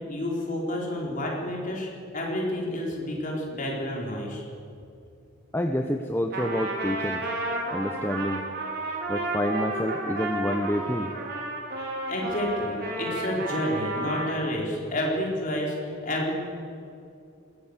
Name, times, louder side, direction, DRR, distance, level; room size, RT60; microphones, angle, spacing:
voice 1, 0.1-4.4 12.1-16.3, left 1 dB, 35° left, -2 dB, 4.2 m, -30 dB
voice 2, 5.5-7.3 7.7-8.4 9.1-11.1, equal, 10° left, 5 dB, 0.7 m, -28 dB
Trumpet, 6.3-14.4, right 2 dB, 50° right, 3.7 m, -32 dB
21.0 x 16.0 x 8.2 m, 2.5 s
head